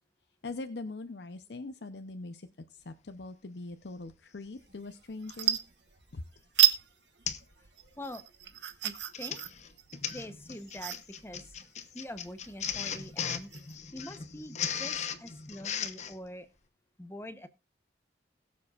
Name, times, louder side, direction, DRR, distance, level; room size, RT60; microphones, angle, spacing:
voice 1, 0.4-5.6 6.1-6.2, left 2 dB, 70° left, 8 dB, 0.7 m, -42 dB
Printer, 4.1-4.2 5.3-5.6 6.1-6.4 6.6-6.8 7.3-7.5 7.9-8.1 8.9-16.2, left 8 dB, 40° left, 0.9 m, -37 dB
sound 1, 4.7-4.9 5.2-6.2 6.5-6.8 7.2-13.7, right 13 dB, 80° right, 1.1 m, -31 dB
voice 2, 8.8-9.4 10.1-10.9 11.2-11.5 11.9-13.5 13.9-16.5 17.0-17.5, left 1 dB, 15° left, 10 dB, 0.8 m, -44 dB
21.0 x 7.4 x 2.4 m, 0.27 s
head